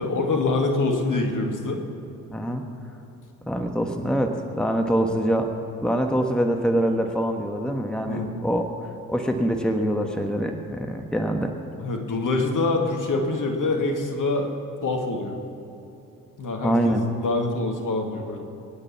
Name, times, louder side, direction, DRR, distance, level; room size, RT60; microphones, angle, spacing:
voice 1, 0.0-1.8 8.1-8.3 11.8-14.5 14.8-15.3 16.4-18.4, left 3 dB, 45° left, 3 dB, 2.3 m, -25 dB
voice 2, 2.3-2.6 3.4-5.5 5.8-8.6 9.1-11.5 16.6-17.0, equal, ahead, 4 dB, 1.5 m, -24 dB
23.5 x 9.8 x 5.9 m, 3.0 s
figure-of-eight pair, 40°, 44 cm